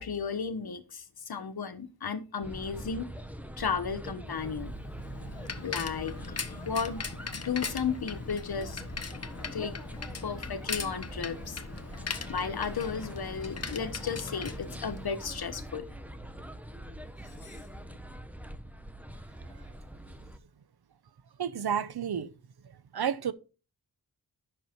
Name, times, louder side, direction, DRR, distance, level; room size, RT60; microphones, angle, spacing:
voice 1, 0.0-3.1 3.6-4.7 5.6-7.0 7.3-8.8 9.5-9.7 10.2-11.6 12.3-15.9 17.4-17.6, left 6 dB, 70° left, 1.3 m, -34 dB
sound 1, 2.4-20.4, right 1 dB, 5° right, 1.0 m, -43 dB
Bicycle, 4.5-15.4, left 4 dB, 40° left, 1.1 m, -40 dB
voice 2, 21.4-22.3 22.9-23.3, right 8 dB, 80° right, 0.9 m, -30 dB
10.0 x 6.3 x 4.5 m
wide cardioid pair, 75°, 38 cm